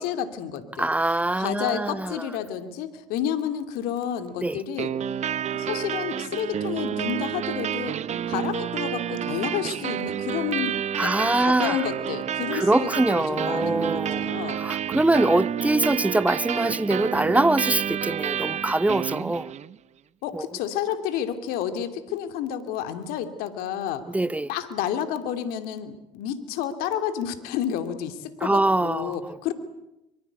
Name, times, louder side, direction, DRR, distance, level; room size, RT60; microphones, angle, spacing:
voice 1, 0.0-0.9 1.3-5.2 5.5-8.0 8.3-14.7 20.2-24.0 24.5-29.5, left 9 dB, 70° left, 2.8 m, -30 dB
voice 2, 0.8-2.1 4.4-4.6 11.0-11.8 12.5-14.3 14.6-19.5 20.3-20.4 24.1-24.5 28.4-29.1, right 2 dB, 10° right, 0.9 m, -23 dB
sound 1, 4.8-19.8, right 9 dB, 45° right, 1.0 m, -29 dB
25.0 x 24.0 x 8.3 m
hypercardioid pair, 70°, 16 cm